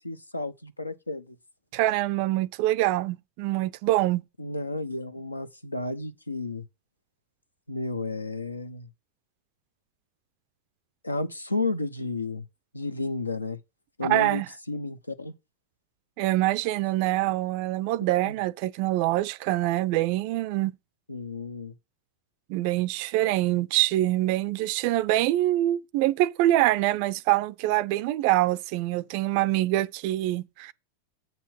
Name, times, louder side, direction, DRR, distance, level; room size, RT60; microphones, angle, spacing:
voice 1, 0.0-1.4 4.4-6.6 7.7-8.9 11.0-12.4 12.7-13.6 14.0-14.4 14.7-15.3 18.2-18.3 21.1-21.7, left 2 dB, 85° left, 0.7 m, -32 dB
voice 2, 1.7-4.2 14.1-14.5 16.2-20.7 22.5-30.7, right 16 dB, 45° right, 0.3 m, -25 dB
7.9 x 4.5 x 5.5 m
figure-of-eight pair, 90°, 0 cm